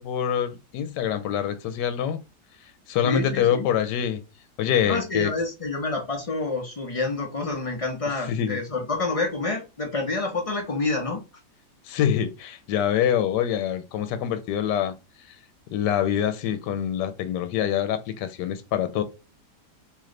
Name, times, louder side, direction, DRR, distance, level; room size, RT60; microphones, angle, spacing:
voice 1, 0.0-2.2 2.9-4.2 4.6-5.3 8.3-8.6 11.9-14.9 15.7-19.0, left 9 dB, 80° left, 1.2 m, -25 dB
voice 2, 3.0-3.7 4.9-11.2, left 3 dB, 45° left, 0.4 m, -28 dB
3.2 x 3.0 x 3.7 m
omnidirectional pair, 1.8 m